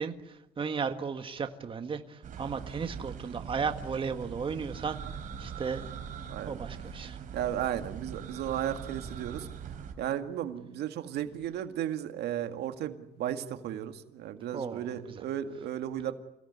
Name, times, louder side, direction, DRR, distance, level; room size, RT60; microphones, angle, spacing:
voice 1, 0.0-5.9 6.4-7.2 14.5-15.2, right 5 dB, 30° right, 7 dB, 1.7 m, -35 dB
sound 1, 2.2-9.9, right 7 dB, 50° right, 3.9 m, -42 dB
voice 2, 7.3-9.5 10.0-16.1, right 11 dB, 75° right, 7 dB, 2.0 m, -34 dB
28.0 x 17.0 x 9.6 m, 0.93 s
cardioid pair, 110°, 17 cm